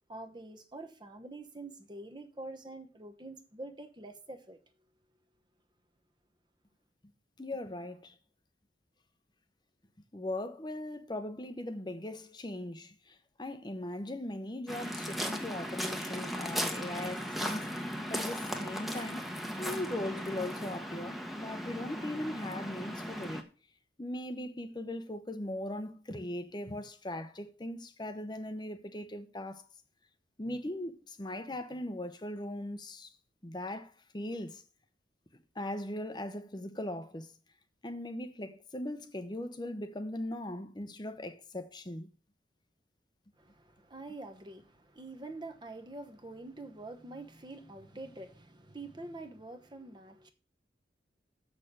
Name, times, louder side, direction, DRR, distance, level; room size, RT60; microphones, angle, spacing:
voice 1, 0.1-4.6 43.4-50.3, right 2 dB, 25° right, 0.9 m, -46 dB
voice 2, 7.4-8.2 10.1-17.8 18.1-19.2 19.6-23.5 24.0-29.6 30.4-33.1 33.4-34.6 35.5-37.3 37.8-42.1, left 1 dB, 25° left, 0.8 m, -39 dB
Waves surf, 14.7-23.4, equal, ahead, 1.0 m, -37 dB
7.2 x 6.4 x 6.6 m
head